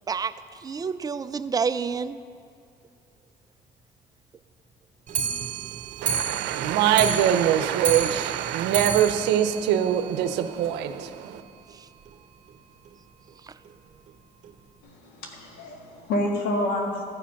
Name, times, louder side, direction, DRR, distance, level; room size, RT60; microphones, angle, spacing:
voice 1, 0.6-2.2 11.7-11.9 13.4-13.5, right 5 dB, 20° right, 13 dB, 0.3 m, -28 dB
Clock, 5.1-10.6 10.9-11.0 11.3-11.4 11.7-11.8 12.1-12.2 12.9-13.0 13.7-13.8 14.4-14.5, right 7 dB, 50° right, 0.9 m, -31 dB
voice 2, 6.0-11.4, right 10 dB, 90° right, 9 dB, 0.6 m, -23 dB
voice 3, 14.8-17.0, left 1 dB, 85° left, 0 dB, 1.8 m, -28 dB
14.0 x 5.1 x 5.8 m, 2.3 s
cardioid pair, 110°, 17 cm